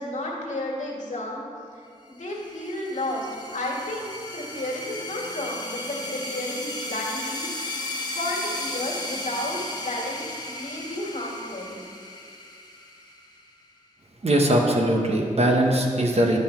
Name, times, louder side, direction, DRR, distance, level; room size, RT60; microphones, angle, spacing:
voice 1, 0.0-1.4 2.1-7.8 8.2-11.8, left 1 dB, 65° left, -3 dB, 2.0 m, -32 dB
sound 1, 2.2-13.5, left 2 dB, 30° left, 1.2 m, -35 dB
voice 2, 14.2-16.4, right 1 dB, 50° right, 0 dB, 1.1 m, -21 dB
11.0 x 5.8 x 4.4 m, 2.3 s
wide cardioid pair, 85°, 14 cm